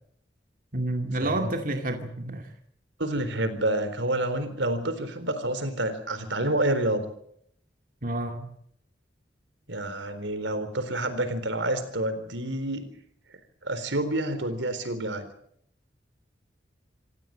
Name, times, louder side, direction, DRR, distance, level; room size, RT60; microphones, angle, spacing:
voice 1, 0.7-2.5 8.0-8.5, right 2 dB, 50° right, 4 dB, 2.2 m, -29 dB
voice 2, 3.0-7.1 9.7-12.9 13.6-15.3, right 1 dB, 85° right, 11 dB, 4.0 m, -28 dB
26.5 x 17.0 x 7.7 m, 0.69 s
head